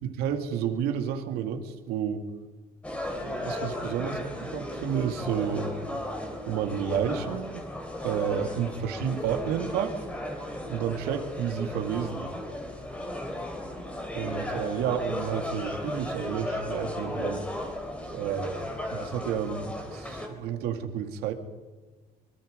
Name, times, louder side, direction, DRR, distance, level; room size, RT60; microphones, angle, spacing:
voice 1, 0.0-2.3 3.1-5.7 6.5-7.7 8.0-10.0 10.7-12.3 14.1-17.5 18.1-18.6 18.9-21.3, right 8 dB, 85° right, 5 dB, 2.4 m, -31 dB
sound 1, 2.8-20.3, left 1 dB, 10° left, 3.3 m, -35 dB
25.0 x 23.5 x 5.3 m, 1.3 s
cardioid pair, 165°, 16 cm